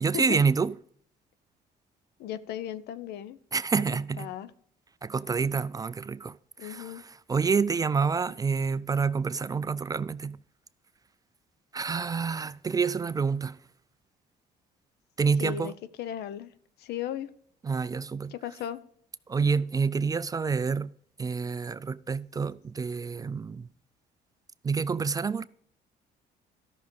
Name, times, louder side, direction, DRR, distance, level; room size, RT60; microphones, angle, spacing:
voice 1, 0.0-0.7 3.5-4.3 5.0-10.4 11.7-13.6 15.2-15.7 17.6-18.3 19.3-20.9 21.2-23.7 24.6-25.5, right 5 dB, 20° right, 0.3 m, -28 dB
voice 2, 2.2-3.4 4.2-4.5 6.6-7.0 15.4-16.5 16.8-17.3 18.3-18.8, left 10 dB, 75° left, 0.8 m, -36 dB
13.0 x 6.3 x 5.3 m
cardioid pair, 110°, 17 cm